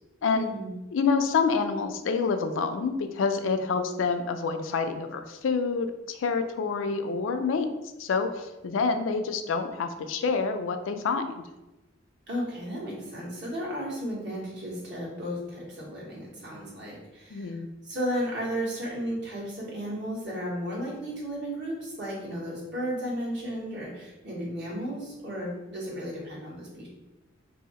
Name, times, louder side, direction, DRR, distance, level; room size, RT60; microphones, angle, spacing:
voice 1, 0.3-0.7 12.3-17.6 17.8-26.9, equal, 60° right, -5 dB, 1.2 m, -34 dB
voice 2, 0.9-7.7 8.0-11.5 17.3-17.7, left 5 dB, 80° left, 7 dB, 0.4 m, -27 dB
2.7 x 2.7 x 4.2 m, 1.0 s
head